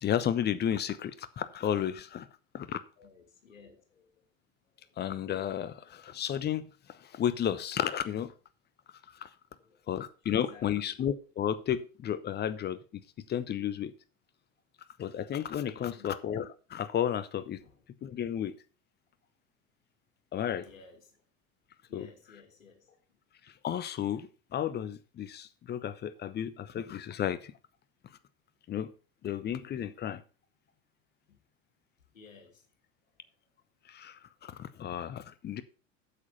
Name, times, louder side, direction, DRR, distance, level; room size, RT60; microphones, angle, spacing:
voice 1, 0.0-2.3 2.5-2.8 5.0-8.3 9.2-9.3 9.9-12.8 13.3-13.9 15.0-17.6 18.0-18.5 20.3-20.6 21.9-22.1 23.6-27.5 28.7-28.9 29.2-30.2 33.9-35.6, left 10 dB, 25° left, 0.9 m, -33 dB
voice 2, 3.0-4.2 4.7-5.0 9.5-10.0 10.3-11.0 15.8-16.1 17.5-17.8 20.6-21.2 21.9-23.2 31.3-31.4 32.1-32.7 34.2-34.3, left 5 dB, 75° left, 2.6 m, -57 dB
8.4 x 7.3 x 5.6 m
figure-of-eight pair, 75°, 40 cm